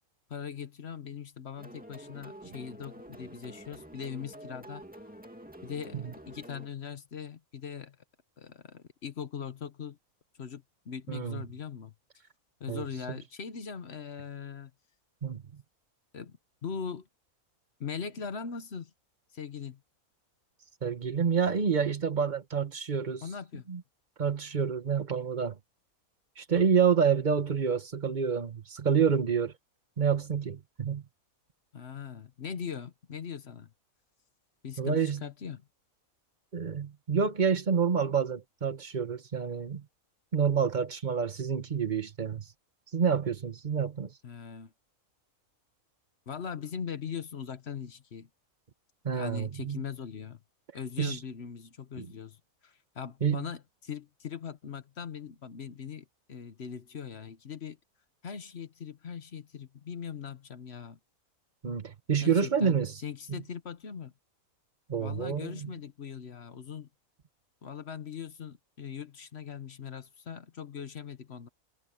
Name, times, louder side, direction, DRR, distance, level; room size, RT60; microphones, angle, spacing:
voice 1, 0.3-4.8 5.6-8.0 8.4-10.0 10.4-11.9 12.6-14.7 16.1-17.1 17.8-18.9 19.3-19.8 23.2-23.6 31.7-33.7 34.6-35.6 44.2-44.7 46.3-48.3 49.2-50.4 50.7-57.8 58.2-61.0 62.2-62.8 63.0-64.1 65.0-66.9 67.6-71.5, left 7 dB, 50° left, 1.2 m, -40 dB
sound 1, 1.6-6.7, right 1 dB, 5° right, 2.1 m, -48 dB
voice 2, 11.1-11.4 12.7-13.2 15.2-15.6 20.8-23.2 23.7-23.8 24.2-25.6 26.4-29.5 30.0-31.0 34.8-35.2 36.5-39.8 40.3-42.5 42.9-44.1 49.0-49.8 51.0-51.2 52.0-52.1 53.2-53.4 61.6-62.9 63.3-63.4 64.9-65.7, right 6 dB, 35° right, 1.2 m, -28 dB
omnidirectional pair, 1.5 m